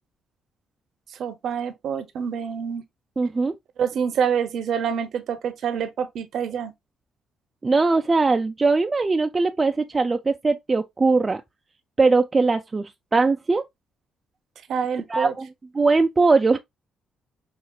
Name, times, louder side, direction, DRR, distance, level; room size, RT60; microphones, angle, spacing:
voice 1, 1.2-2.8 3.8-6.7 14.7-15.3, right 7 dB, 70° right, 0.7 m, -26 dB
voice 2, 3.2-3.5 7.6-11.4 12.0-13.7 15.1-15.5 15.7-16.6, right 3 dB, 25° right, 0.3 m, -20 dB
5.5 x 2.4 x 2.3 m
cardioid pair, 90°, 0 cm